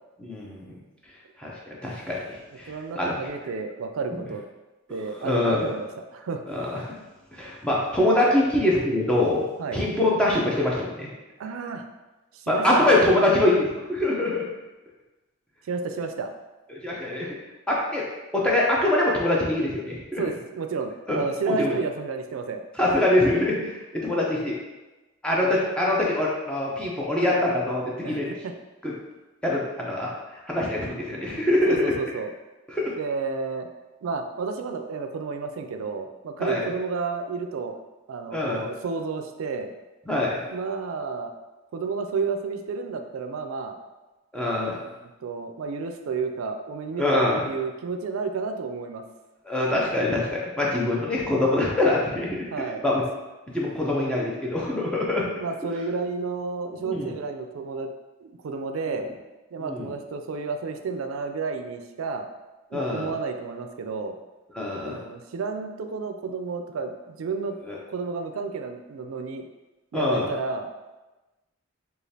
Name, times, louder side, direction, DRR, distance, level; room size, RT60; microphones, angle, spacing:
voice 1, 0.2-0.7 1.4-2.2 2.6-3.1 5.2-5.7 6.5-6.7 7.3-9.4 9.7-11.1 12.5-14.4 16.7-17.4 17.7-18.0 18.3-20.2 21.1-21.2 21.5-21.7 22.8-24.6 25.2-28.3 28.8-28.9 29.4-30.1 30.5-31.9 32.7-32.9 36.4-36.7 38.3-38.6 40.1-40.4 44.3-44.8 47.0-47.4 49.5-52.4 52.8-53.0 53.5-55.2 56.8-57.1 58.9-59.0 59.6-59.9 62.7-63.1 64.5-65.0 67.7-67.8 69.9-70.3, left 1 dB, 5° left, -5 dB, 0.6 m, -24 dB
voice 2, 2.7-4.4 4.9-6.4 9.6-9.8 11.4-11.8 12.3-13.1 15.7-16.3 20.2-22.6 28.0-28.5 31.7-32.3 33.0-33.7 34.0-37.8 38.1-39.7 40.4-41.3 41.7-43.8 44.7-44.8 45.2-49.0 52.5-53.0 55.4-57.9 58.2-59.1 59.5-62.3 62.7-64.2 64.9-67.6 67.9-69.5 69.9-70.7, right 4 dB, 90° right, 6 dB, 0.4 m, -31 dB
5.0 x 2.4 x 2.7 m, 1.1 s
head